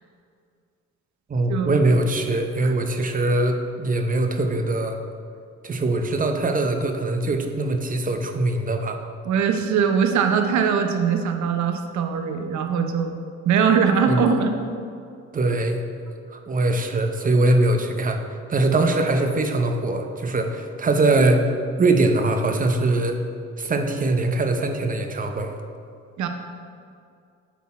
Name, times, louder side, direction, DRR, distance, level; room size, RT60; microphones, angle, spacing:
voice 1, 1.3-5.0 5.6-9.0 14.1-14.2 15.3-15.8 16.3-18.2 18.5-21.5 21.8-23.2 23.6-25.5, right 2 dB, 30° right, 5 dB, 0.7 m, -22 dB
voice 2, 9.3-13.2 13.5-14.6 26.2-26.3, right 6 dB, 70° right, 5 dB, 0.7 m, -21 dB
8.3 x 4.1 x 4.2 m, 2.3 s
cardioid pair, 90°, 30 cm